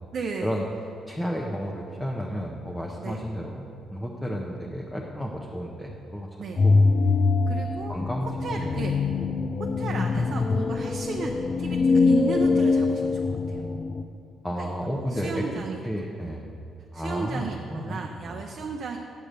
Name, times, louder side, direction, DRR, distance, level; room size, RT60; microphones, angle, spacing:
voice 1, 0.1-0.5 3.0-3.2 6.4-6.6 7.5-8.0 8.4-9.0 9.8-13.6 14.6-15.8 16.9-19.0, right 5 dB, 55° right, 2 dB, 0.6 m, -34 dB
voice 2, 1.1-6.3 6.6-6.8 7.9-8.9 10.2-10.3 14.4-16.4 16.9-18.4, equal, 5° left, -1 dB, 0.8 m, -32 dB
sound 1, 6.6-14.0, left 4 dB, 40° left, 0.4 m, -23 dB
8.8 x 4.8 x 6.7 m, 2.5 s
cardioid pair, 90°, 0 cm